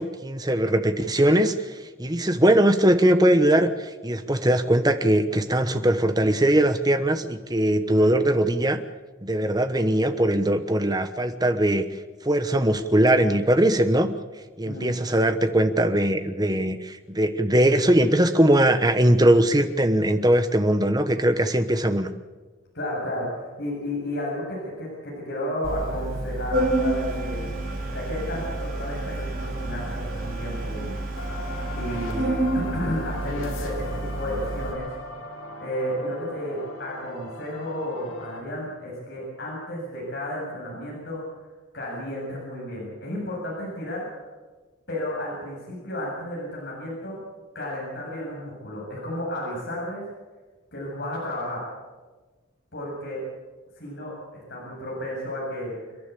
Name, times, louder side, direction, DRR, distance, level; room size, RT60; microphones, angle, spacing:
voice 1, 0.0-8.8 9.2-11.9 12.2-14.1 14.6-22.1, right 1 dB, 20° right, 9 dB, 1.1 m, -21 dB
voice 2, 14.6-15.0 22.7-27.4 27.9-30.9 31.7-34.9 35.6-41.4 41.7-44.0 44.9-47.2 47.5-50.0 50.7-51.6 52.7-53.2 53.8-55.7, equal, 55° left, -5 dB, 7.8 m, -32 dB
Organ, 25.6-34.7, right 1 dB, 45° right, 4.7 m, -29 dB
sound 1, 31.1-38.4, left 2 dB, 70° left, 3.5 m, -38 dB
29.5 x 11.0 x 8.5 m, 1.3 s
head